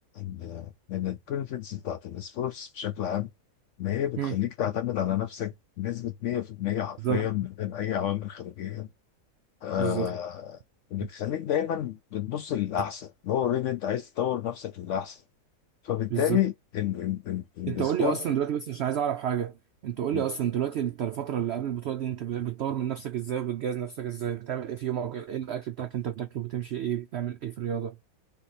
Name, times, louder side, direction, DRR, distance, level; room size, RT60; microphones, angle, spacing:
voice 1, 0.1-3.3 3.8-8.9 9.6-10.6 10.9-15.2 15.8-18.2 20.1-20.3, left 11 dB, 70° left, 0.7 m, -30 dB
voice 2, 7.0-7.3 9.8-10.1 16.1-16.4 17.7-19.6 19.8-28.0, right 9 dB, 85° right, 0.5 m, -30 dB
3.5 x 3.2 x 4.1 m
omnidirectional pair, 1.7 m